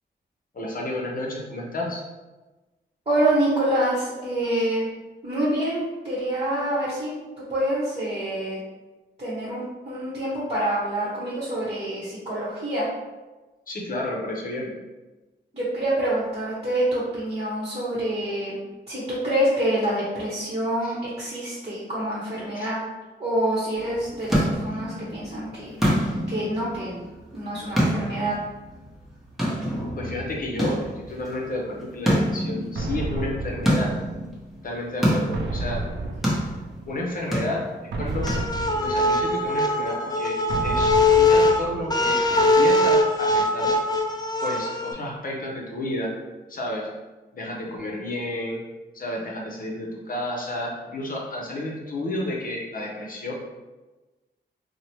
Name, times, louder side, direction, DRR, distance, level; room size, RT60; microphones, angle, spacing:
voice 1, 0.5-2.0 4.5-4.7 13.7-14.7 20.8-21.0 22.6-22.7 30.0-33.9 34.6-35.8 36.4-36.5 36.9-37.7 38.0-38.3 38.8-40.3 40.6-43.7 44.4-46.1 46.5-46.9 47.3-48.6 48.9-53.3, left 1 dB, 45° left, -1 dB, 0.7 m, -31 dB
voice 2, 3.1-4.9 5.2-7.1 7.5-8.6 9.2-12.9 15.5-18.6 18.9-22.8 23.2-27.1 27.3-28.3, right 1 dB, 30° right, -8 dB, 1.0 m, -26 dB
sound 1, 23.8-38.9, equal, ahead, 1.0 m, -28 dB
sound 2, 32.8-34.5 35.3-37.0 37.9-39.7 40.5-42.3, right 2 dB, 65° right, 0.4 m, -32 dB
sound 3, 38.2-44.9, left 2 dB, 20° left, 0.3 m, -21 dB
2.9 x 2.1 x 2.9 m, 1.2 s
cardioid pair, 55°, 20 cm